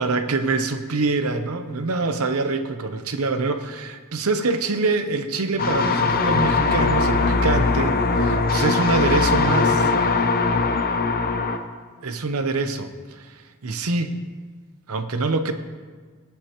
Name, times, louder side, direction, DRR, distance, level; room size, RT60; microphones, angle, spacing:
voice 1, 0.0-9.9 12.0-14.2 14.9-15.5, right 3 dB, 70° right, 9 dB, 0.8 m, -25 dB
sound 1, 5.6-11.6, left 4 dB, 40° left, 0.6 m, -20 dB
Acoustic guitar, 6.1-9.4, right 2 dB, 10° left, 1.0 m, -40 dB
17.5 x 8.1 x 3.0 m, 1.5 s
head